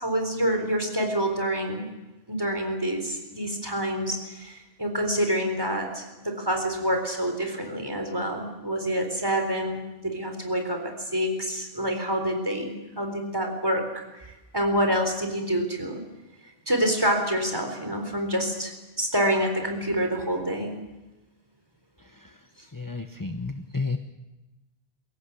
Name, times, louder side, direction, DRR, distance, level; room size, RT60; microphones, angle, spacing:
voice 1, 0.0-1.9 2.3-16.0 16.7-20.7, equal, 20° right, 4 dB, 4.0 m, -27 dB
voice 2, 22.0-22.4 22.7-24.0, left 3 dB, 20° left, 7 dB, 0.9 m, -32 dB
22.5 x 17.5 x 8.4 m, 1.1 s
omnidirectional pair, 1.2 m